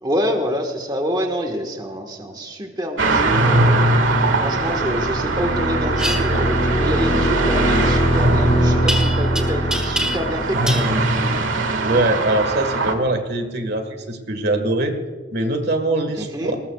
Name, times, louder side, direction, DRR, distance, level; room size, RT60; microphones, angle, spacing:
voice 1, 0.0-3.8 4.4-11.0 16.1-16.5, equal, 20° right, 3 dB, 1.4 m, -26 dB
sound 1, 3.0-12.9, right 2 dB, 70° right, 1.8 m, -21 dB
sound 2, 4.1-11.7, right 1 dB, 35° left, 5.2 m, -23 dB
sound 3, 6.0-6.2 8.9-9.4 9.7-10.4 10.7-10.9, right 1 dB, 5° right, 1.6 m, -24 dB
voice 2, 11.8-15.0 15.3-16.5, right 2 dB, 55° right, 7 dB, 1.6 m, -22 dB
20.5 x 20.0 x 2.4 m, 1.5 s
head